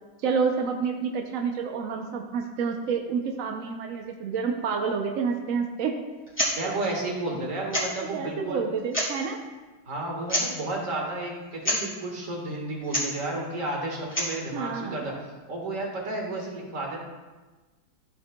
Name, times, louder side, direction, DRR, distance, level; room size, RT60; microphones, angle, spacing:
voice 1, 0.2-5.9 6.6-6.7 8.0-9.4 14.5-15.1, right 5 dB, 70° right, 3 dB, 0.8 m, -29 dB
sound 1, 6.3-6.6 6.8-6.9 7.7-8.1 8.8-9.3 10.3-10.6 11.6-11.9 12.8-13.2 14.0-14.4, equal, 5° left, 2.0 m, -27 dB
voice 2, 6.5-8.6 9.8-15.1 15.5-17.0, right 2 dB, 45° right, -1 dB, 1.8 m, -32 dB
13.0 x 6.5 x 2.2 m, 1.3 s
omnidirectional pair, 2.1 m